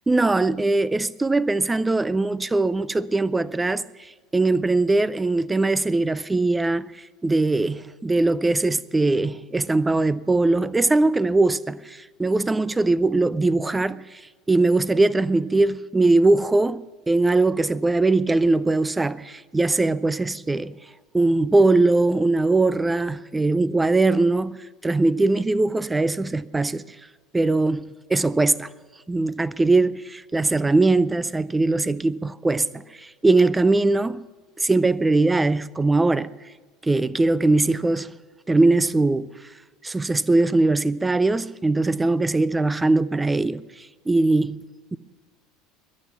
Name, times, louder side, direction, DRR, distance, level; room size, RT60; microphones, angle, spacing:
voice 1, 0.1-3.8 4.3-14.2 14.5-16.8 17.1-20.8 21.1-24.6 24.8-26.8 27.3-28.7 29.1-30.0 30.3-34.2 34.6-36.3 36.8-38.1 38.5-39.3 39.8-44.6 44.9-45.0, right 2 dB, 10° right, 0.5 m, -21 dB
22.0 x 8.6 x 5.9 m
figure-of-eight pair, 70°, 0 cm